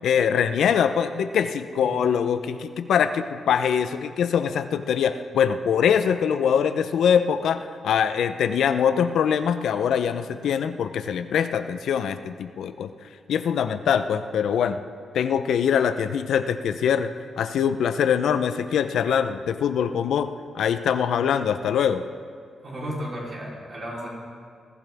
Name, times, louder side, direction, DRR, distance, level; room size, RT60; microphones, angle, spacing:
voice 1, 0.0-12.9 13.3-14.8 15.1-17.1 17.4-20.3 20.5-22.0, left 8 dB, 85° left, 10 dB, 0.6 m, -23 dB
voice 2, 22.6-24.1, equal, 35° right, -4 dB, 3.6 m, -34 dB
21.0 x 14.5 x 3.5 m, 2.2 s
wide cardioid pair, 160°, 0 cm